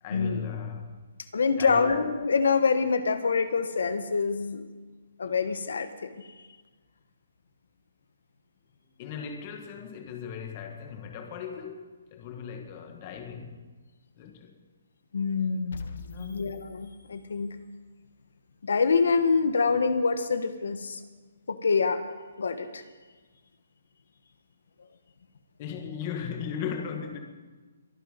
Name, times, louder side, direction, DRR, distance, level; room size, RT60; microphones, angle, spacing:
voice 1, 0.0-1.0 1.6-1.9 9.0-13.6 14.1-14.5 16.1-16.5 25.6-27.2, left 7 dB, 25° left, 1.5 m, -37 dB
voice 2, 1.3-4.6 5.2-6.3 15.1-17.5 18.6-21.0 21.5-22.0 22.4-22.8, left 5 dB, 75° left, 1.4 m, -26 dB
sound 1, 15.7-17.8, left 4 dB, 60° left, 1.3 m, -44 dB
23.0 x 9.1 x 5.3 m
hypercardioid pair, 170°, 0 cm